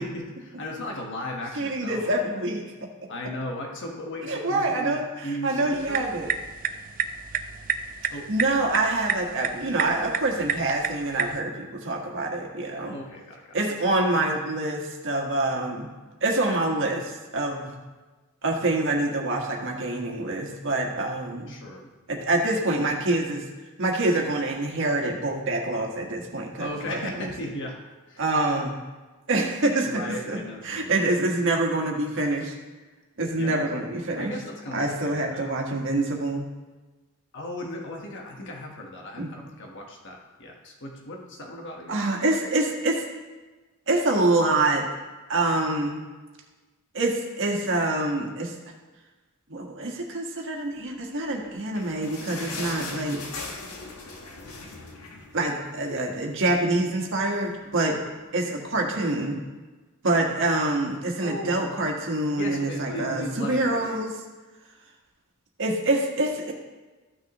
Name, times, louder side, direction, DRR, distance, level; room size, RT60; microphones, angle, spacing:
voice 1, 0.0-2.2 3.1-6.1 8.1-8.3 12.8-13.6 21.5-21.9 26.6-28.2 29.8-30.9 33.4-33.7 34.2-35.5 37.3-42.1 61.2-61.6 62.2-64.0, left 1 dB, 55° left, 1 dB, 1.4 m, -36 dB
voice 2, 1.6-2.9 4.3-6.3 8.3-13.0 13.5-15.9 16.2-17.7 18.4-21.5 22.1-23.4 23.8-27.3 28.2-28.7 29.3-29.9 30.3-30.4 30.6-32.5 33.2-34.3 34.7-36.5 39.2-39.3 41.9-43.0 43.9-44.9 45.3-46.0 46.9-48.5 49.5-53.2 55.3-58.0 58.3-59.4 60.0-64.2 65.6-66.5, right 2 dB, 60° right, 0 dB, 1.5 m, -26 dB
sound 1, 5.7-11.4, right 7 dB, 40° right, 0.4 m, -31 dB
sound 2, 51.3-56.1 56.4-56.5 56.8-57.0 57.6-57.7, left 3 dB, 85° left, 1.4 m, -39 dB
14.5 x 6.3 x 3.0 m, 1.2 s
head